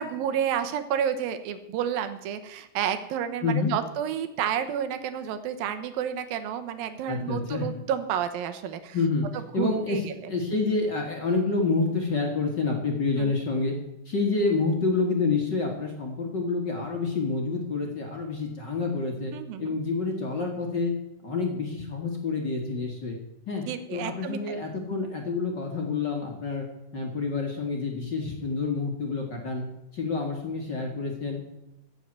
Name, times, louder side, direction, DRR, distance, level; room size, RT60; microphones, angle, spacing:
voice 1, 0.0-9.0 9.3-10.3 13.2-13.3 19.3-19.8 23.7-24.6, right 9 dB, 90° right, 9 dB, 2.8 m, -30 dB
voice 2, 3.4-3.7 7.1-7.7 8.9-9.3 9.5-10.0 10.3-13.7 14.1-19.3 19.6-20.9 21.2-23.2 23.5-23.6 23.9-26.7 26.9-29.6 29.9-31.4, left 4 dB, 40° left, 2 dB, 1.8 m, -28 dB
15.0 x 6.5 x 8.8 m, 0.88 s
omnidirectional pair, 4.0 m